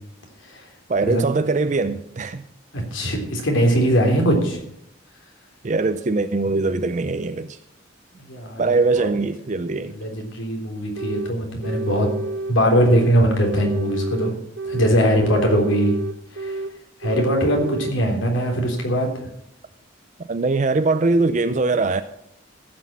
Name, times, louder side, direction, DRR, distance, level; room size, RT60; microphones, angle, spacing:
voice 1, 0.9-2.4 5.6-7.6 8.6-10.0 20.3-22.0, right 3 dB, 40° right, 0.5 m, -21 dB
voice 2, 2.7-4.6 8.2-9.1 9.9-12.1 12.5-14.3 14.6-15.9 16.3-16.6 17.0-19.1, equal, 80° left, 3.5 m, -21 dB
sound 1, 11.0-11.3 11.6-13.1 13.4-14.9 15.2-16.7 17.0-18.0, right 2 dB, 70° right, 1.0 m, -29 dB
15.0 x 6.2 x 7.3 m
head